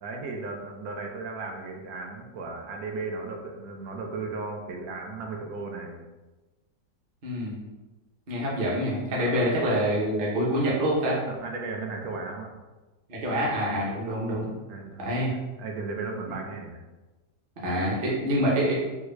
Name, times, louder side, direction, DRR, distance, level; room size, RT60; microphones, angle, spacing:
voice 1, 0.0-6.0 9.1-9.5 11.3-12.5 14.3-15.2 15.6-16.8, right 3 dB, 70° right, 2 dB, 1.0 m, -36 dB
voice 2, 7.2-7.6 8.3-11.2 13.1-14.5 15.0-15.3 17.6-18.8, equal, 45° right, -5 dB, 0.7 m, -26 dB
3.4 x 2.3 x 3.1 m, 1.2 s
omnidirectional pair, 1.8 m